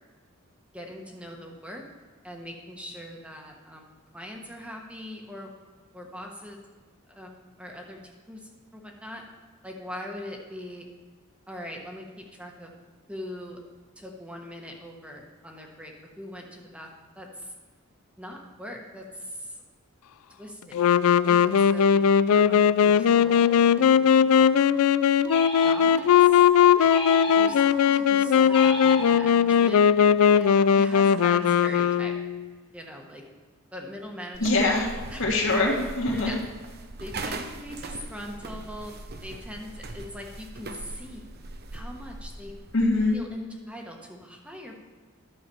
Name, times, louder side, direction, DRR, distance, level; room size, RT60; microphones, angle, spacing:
voice 1, 0.7-1.8 2.2-3.9 4.1-5.5 5.9-6.6 7.1-9.2 9.6-10.9 11.5-12.7 13.1-13.6 14.0-16.9 17.1-17.5 18.2-19.6 20.3-20.8 21.2-22.0 22.3-24.0 24.4-24.5 25.6-26.4 26.8-26.9 27.3-29.8 30.3-32.1 32.7-33.2 33.7-34.5 35.1-35.2 36.2-36.4 37.0-38.9 39.2-41.2 41.7-42.5 43.1-44.8, equal, 5° right, 1 dB, 1.2 m, -41 dB
Wind instrument woodwind instrument, 20.7-32.5, left 7 dB, 75° left, 0.4 m, -19 dB
sound 1, 25.2-26.3 26.9-27.9 28.5-29.7, left 3 dB, 20° left, 1.3 m, -34 dB
sound 2, 34.3-43.3, right 2 dB, 45° right, 0.8 m, -40 dB
voice 2, 34.4-36.4 42.7-43.2, left 2 dB, 60° left, -3 dB, 2.1 m, -24 dB
12.0 x 6.1 x 7.0 m, 1.4 s
head